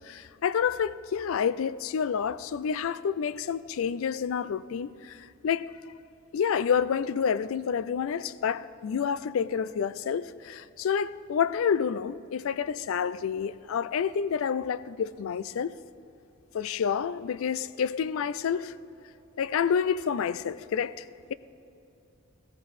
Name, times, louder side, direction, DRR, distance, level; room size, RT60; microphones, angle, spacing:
voice 1, 0.0-5.8 6.3-15.8 16.5-18.8 19.4-21.3, left 7 dB, 70° left, 0.3 m, -29 dB
15.5 x 14.5 x 4.1 m
head